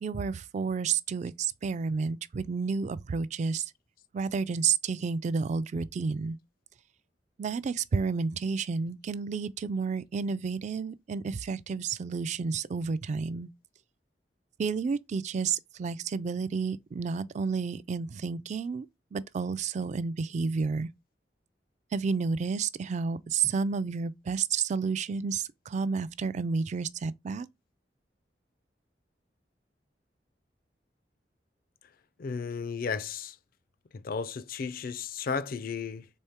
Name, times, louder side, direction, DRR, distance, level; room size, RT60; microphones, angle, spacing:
voice 1, 0.0-3.6 4.1-6.4 7.4-13.5 14.6-18.9 19.1-20.9 21.9-27.5, right 5 dB, 40° right, 0.3 m, -31 dB
voice 2, 32.2-33.4 33.9-36.1, left 5 dB, 55° left, 0.4 m, -34 dB
4.3 x 3.5 x 3.5 m
head